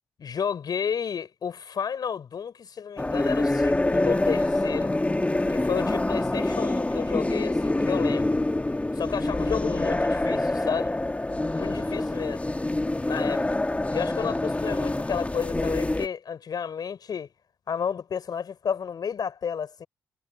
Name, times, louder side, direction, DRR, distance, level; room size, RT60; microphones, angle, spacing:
voice 1, 0.2-4.9 5.5-8.4 8.9-11.0 11.5-12.4 13.0-13.5 13.9-17.3 17.7-19.9, left 7 dB, 60° left, 6.8 m, -31 dB
sound 1, 3.0-16.1, left 2 dB, 15° left, 2.3 m, -26 dB
hypercardioid pair, 45°, 8 cm